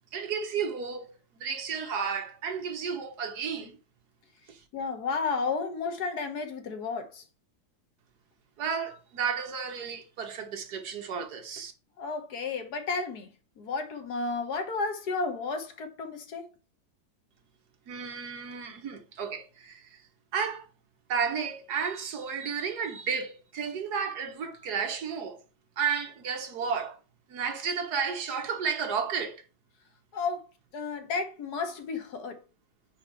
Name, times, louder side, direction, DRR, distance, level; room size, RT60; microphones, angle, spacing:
voice 1, 0.1-1.1 1.4-3.8 4.5-4.6 8.6-11.7 17.9-20.0 20.3-20.7 21.1-25.4 25.8-27.0 27.3-29.4, right 6 dB, 60° right, 1.5 m, -32 dB
voice 2, 4.7-7.2 12.0-13.3 13.6-16.5 30.1-30.5 30.7-32.4, left 4 dB, 65° left, 1.6 m, -32 dB
5.1 x 5.1 x 4.4 m
omnidirectional pair, 2.0 m